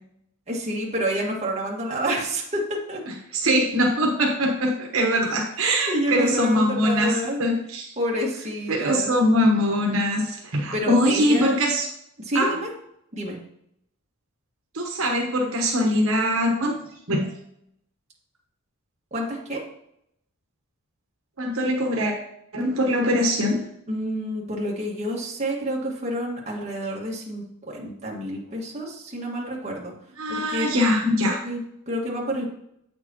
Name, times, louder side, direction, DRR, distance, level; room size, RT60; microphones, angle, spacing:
voice 1, 0.5-3.0 5.6-7.4 8.0-9.1 10.7-11.5 12.2-12.7 13.1-13.4 19.1-19.6 23.9-29.9 30.3-30.7 31.4-32.5, right 1 dB, 30° right, -3 dB, 1.7 m, -28 dB
voice 2, 3.1-7.9 8.7-11.9 12.3-12.5 14.7-16.8 17.1-17.3 21.4-22.1 22.5-23.6 30.2-31.4, equal, 70° right, 0 dB, 1.2 m, -22 dB
8.2 x 6.8 x 2.9 m, 0.75 s
head